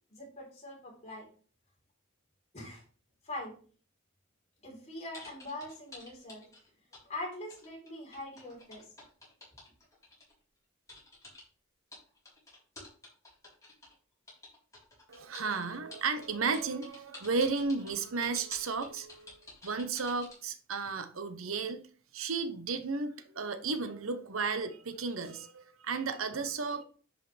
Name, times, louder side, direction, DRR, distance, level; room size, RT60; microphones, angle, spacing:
voice 1, 0.1-1.3 2.5-2.8 3.2-3.6 4.6-6.5 7.1-8.9, left 1 dB, 35° left, 3.9 m, -42 dB
sound 1, 5.1-7.1 7.3-10.3 10.9-11.4 11.9-13.9 14.3-20.4, left 2 dB, 15° left, 3.8 m, -50 dB
voice 2, 15.1-21.9 22.1-26.8, right 4 dB, 85° right, 0.9 m, -34 dB
10.0 x 5.6 x 3.4 m
head